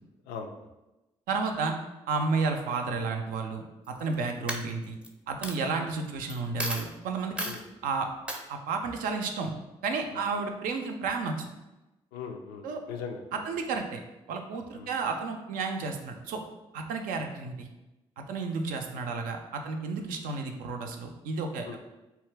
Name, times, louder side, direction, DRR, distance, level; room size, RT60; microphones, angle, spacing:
voice 1, 1.3-1.8 2.1-5.0 5.3-7.5 7.8-8.1 8.5-9.5 9.8-11.5 12.6-12.8 13.3-14.0 14.3-16.4 16.7-17.7 18.2-21.8, right 4 dB, 75° right, 4 dB, 0.4 m, -32 dB
Coin (dropping), 3.8-4.1 4.5-5.1 5.4-5.6 6.3-6.4 6.6-6.9 7.4-7.6 8.3-8.4, equal, 5° right, 0.5 m, -33 dB
voice 2, 12.1-13.4 14.7-14.9 21.7-21.8, left 6 dB, 85° left, 4 dB, 0.4 m, -39 dB
2.8 x 2.3 x 3.2 m, 1.0 s
hypercardioid pair, 45°, 14 cm